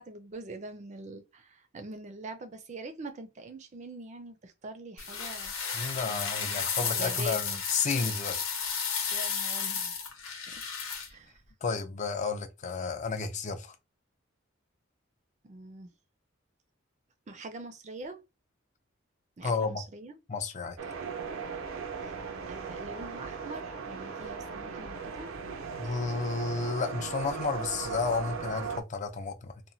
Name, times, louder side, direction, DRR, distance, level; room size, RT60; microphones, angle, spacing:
voice 1, 0.0-5.5 6.0-7.6 9.1-10.0 10.5-10.6 11.1-11.4 15.4-15.9 17.3-18.2 19.4-20.1 22.0-22.1 22.5-25.3, right 2 dB, 35° right, 0.4 m, -44 dB
sound 1, 5.0-11.1, left 6 dB, 85° left, 0.9 m, -33 dB
voice 2, 5.7-8.4 11.6-13.7 19.4-19.8 20.3-20.8 25.8-29.6, left 4 dB, 35° left, 0.4 m, -32 dB
sound 2, 20.8-28.8, right 5 dB, 90° right, 0.5 m, -38 dB
2.9 x 2.2 x 2.6 m
head